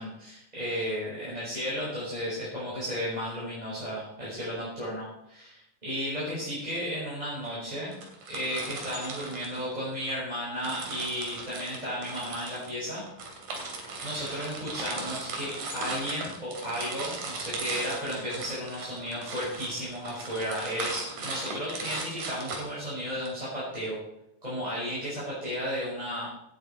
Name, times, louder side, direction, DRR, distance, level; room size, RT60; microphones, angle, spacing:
voice 1, 0.0-7.9 8.3-13.4 14.0-24.0 24.4-26.3, equal, 10° right, -9 dB, 5.7 m, -34 dB
sound 1, 7.9-10.2 10.6-23.3, right 3 dB, 60° right, 4.1 m, -38 dB
17.0 x 11.5 x 4.6 m, 0.81 s
omnidirectional pair, 4.0 m